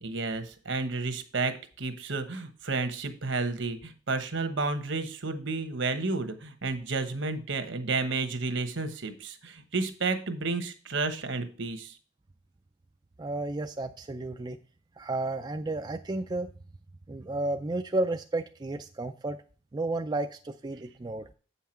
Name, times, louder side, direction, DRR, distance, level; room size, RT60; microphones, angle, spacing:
voice 1, 0.0-12.0, right 3 dB, 70° right, 9 dB, 1.1 m, -31 dB
voice 2, 13.2-14.6 15.0-16.5 17.1-19.4 19.7-21.3, right 2 dB, 20° right, 6 dB, 0.4 m, -32 dB
8.2 x 5.7 x 4.4 m, 0.38 s
head